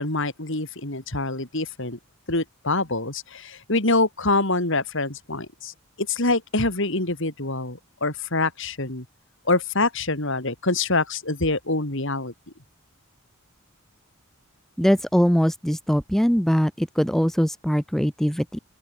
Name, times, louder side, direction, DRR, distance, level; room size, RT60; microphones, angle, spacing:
voice 1, 0.0-2.0 2.3-5.7 6.0-9.0 9.5-12.3, left 2 dB, 60° left, 4.1 m, -25 dB
voice 2, 14.8-18.6, equal, ahead, 0.6 m, -21 dB
open air
head